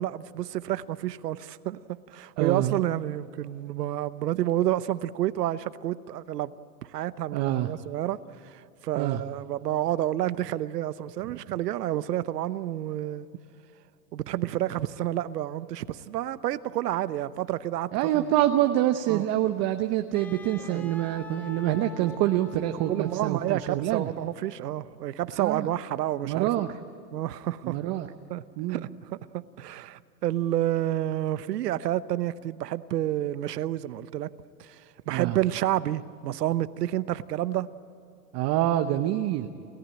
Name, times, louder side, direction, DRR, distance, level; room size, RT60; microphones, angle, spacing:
voice 1, 0.0-6.5 6.9-13.3 14.1-18.3 19.1-19.3 20.6-20.9 22.0-22.1 22.9-26.7 27.1-27.8 28.3-34.3 34.6-37.7, right 13 dB, 80° right, 15 dB, 1.0 m, -30 dB
voice 2, 2.4-2.8 7.3-7.7 9.0-9.2 17.9-24.1 25.4-25.7 26.2-26.7 27.6-28.1 28.6-28.8 35.1-35.4 38.3-39.5, right 13 dB, 35° right, 7 dB, 0.9 m, -26 dB
Wind instrument woodwind instrument, 20.1-24.2, left 3 dB, 5° left, 0.5 m, -45 dB
29.0 x 15.0 x 8.9 m, 2.6 s
hypercardioid pair, 135°, 48 cm